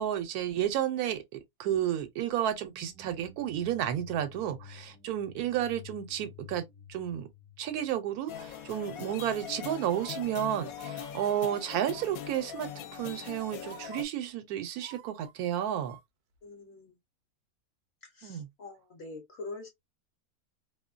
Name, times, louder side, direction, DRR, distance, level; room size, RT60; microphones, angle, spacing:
voice 1, 0.0-6.6 6.9-7.3 7.6-16.0 18.2-18.5, right 10 dB, 80° right, 1.1 m, -32 dB
sound 1, 2.5-8.5, left 8 dB, 20° left, 0.4 m, -52 dB
sound 2, 8.3-14.0, left 9 dB, 75° left, 1.0 m, -41 dB
sound 3, 9.7-10.1 10.7-11.0 11.9-12.3 13.1-13.2 13.6-14.0 14.8-16.0 16.4-16.5, right 9 dB, 65° right, 0.7 m, -50 dB
voice 2, 16.4-16.9 18.2-19.7, left 3 dB, 55° left, 0.8 m, -44 dB
2.6 x 2.2 x 2.3 m
omnidirectional pair, 1.6 m